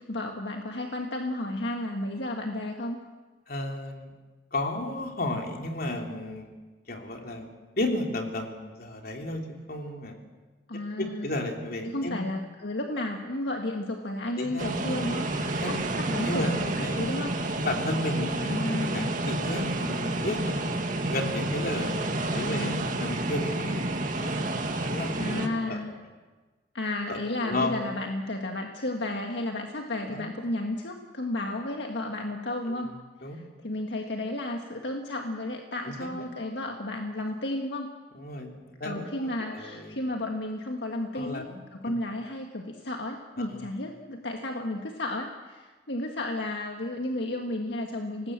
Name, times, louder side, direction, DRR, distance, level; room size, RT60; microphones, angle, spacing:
voice 1, 0.1-3.0 10.7-11.3 11.8-17.3 18.4-19.1 22.3-22.9 25.2-25.9 26.7-32.9 33.3-37.9 38.8-48.3, left 1 dB, 75° left, 2 dB, 1.8 m, -33 dB
voice 2, 3.5-4.1 4.5-6.5 6.9-7.5 7.8-10.2 11.0-12.2 14.4-14.8 15.4-15.7 16.2-16.5 16.8-17.0 17.5-20.6 21.1-23.8 24.2-25.1 25.4-25.8 27.1-27.7 30.1-30.3 32.8-33.4 35.8-36.3 38.1-40.0 41.1-41.6 41.8-41.9 43.4-43.6, left 1 dB, 55° left, 2 dB, 3.4 m, -33 dB
sound 1, 14.6-25.5, right 2 dB, 45° right, 2.1 m, -30 dB
25.0 x 19.5 x 7.6 m, 1.3 s
head